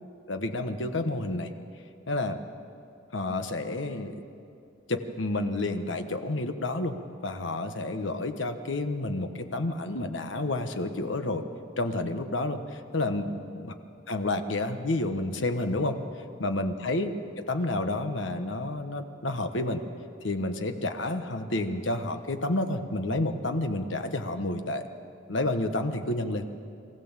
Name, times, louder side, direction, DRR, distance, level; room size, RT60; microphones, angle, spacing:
voice 1, 0.3-1.5 2.1-2.4 3.1-4.1 4.9-6.9 7.2-11.4 11.8-13.7 14.1-16.0 16.4-19.8 20.2-24.8 25.3-26.4, left 2 dB, 80° left, 7 dB, 1.2 m, -30 dB
23.5 x 15.5 x 7.4 m, 2.6 s
head